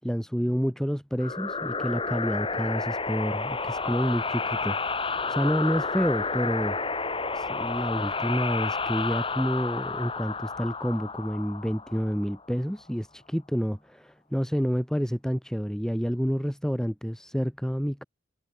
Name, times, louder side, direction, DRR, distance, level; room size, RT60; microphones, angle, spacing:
voice 1, 0.0-6.8 7.3-18.0, equal, 5° left, 6.1 m, -29 dB
sound 1, 1.2-12.5, left 4 dB, 25° left, 6.7 m, -31 dB
head